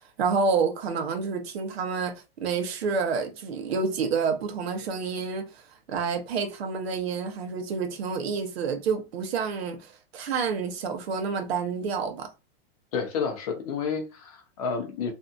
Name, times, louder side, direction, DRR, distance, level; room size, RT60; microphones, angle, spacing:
voice 1, 0.2-5.6 5.9-12.3, right 5 dB, 75° right, 0.9 m, -28 dB
voice 2, 12.9-15.1, left 5 dB, 35° left, 0.7 m, -30 dB
2.7 x 2.5 x 2.3 m
supercardioid pair, 175°, 31 cm